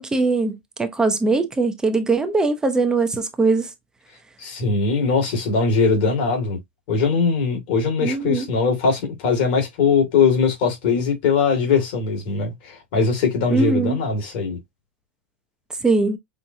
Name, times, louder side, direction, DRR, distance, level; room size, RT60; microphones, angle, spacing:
voice 1, 0.0-3.7 8.0-8.5 13.5-14.0 15.8-16.2, right 3 dB, 10° right, 0.7 m, -21 dB
voice 2, 4.4-6.6 6.9-14.6, left 5 dB, 60° left, 2.3 m, -21 dB
5.6 x 2.3 x 2.7 m
hypercardioid pair, 125°, 6 cm